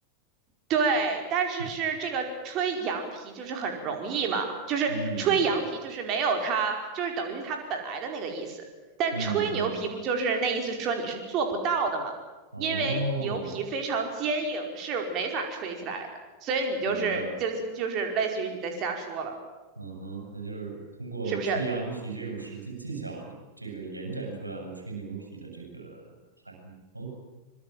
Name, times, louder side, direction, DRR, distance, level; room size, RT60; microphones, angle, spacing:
voice 1, 0.7-8.6 9.0-12.1 12.6-16.1 16.4-19.3 21.3-21.6, right 5 dB, 35° right, 3 dB, 4.9 m, -29 dB
voice 2, 4.9-5.4 9.1-9.7 12.5-13.5 16.8-17.3 19.8-26.1 26.5-27.1, right 3 dB, 80° right, 1 dB, 7.1 m, -35 dB
25.0 x 23.0 x 7.7 m, 1.2 s
figure-of-eight pair, 90°, 0 cm